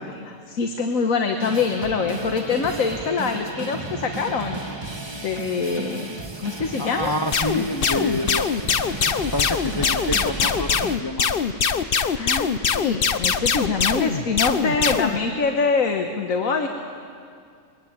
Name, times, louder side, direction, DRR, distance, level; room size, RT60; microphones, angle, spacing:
voice 1, 0.0-4.6 5.1-7.1 12.1-16.7, left 4 dB, 90° left, 5 dB, 1.6 m, -25 dB
sound 1, 1.4-11.0, right 2 dB, 20° right, 1.7 m, -34 dB
voice 2, 6.8-8.5 8.8-9.0 9.3-11.3 14.7-15.0, left 1 dB, 20° left, 8 dB, 0.7 m, -28 dB
sound 2, 7.3-15.2, left 6 dB, 50° left, 0.9 m, -22 dB
23.5 x 20.5 x 8.9 m, 2.3 s
omnidirectional pair, 1.4 m